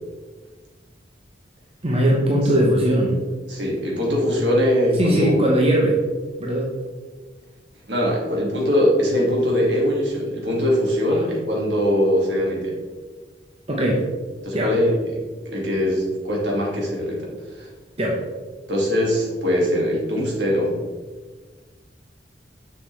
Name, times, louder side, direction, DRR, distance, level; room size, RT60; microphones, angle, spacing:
voice 1, 1.8-3.2 5.0-6.0 6.4-6.6 11.2-11.3 13.7-14.0 14.5-14.7 18.0-18.2, right 1 dB, 35° right, -2 dB, 1.0 m, -19 dB
voice 2, 3.5-5.4 7.9-12.7 14.4-17.3 17.5-17.7 18.7-20.8, equal, 70° right, -3 dB, 2.2 m, -21 dB
6.8 x 6.6 x 3.4 m, 1.4 s
head